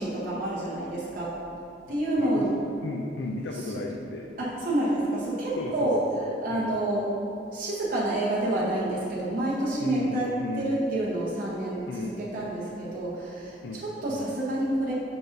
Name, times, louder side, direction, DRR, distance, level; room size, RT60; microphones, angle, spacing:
voice 1, 0.0-1.4 1.9-2.5 3.7-3.8 4.4-6.0 6.4-7.2 7.5-13.6 13.8-14.9, right 1 dB, 50° right, -7 dB, 0.9 m, -28 dB
voice 2, 1.9-4.3 5.6-6.1 6.5-6.8 9.8-10.8 11.9-12.2 13.6-13.8 14.1-14.3, left 2 dB, 80° left, 1 dB, 0.4 m, -35 dB
7.6 x 5.2 x 2.6 m, 2.7 s
head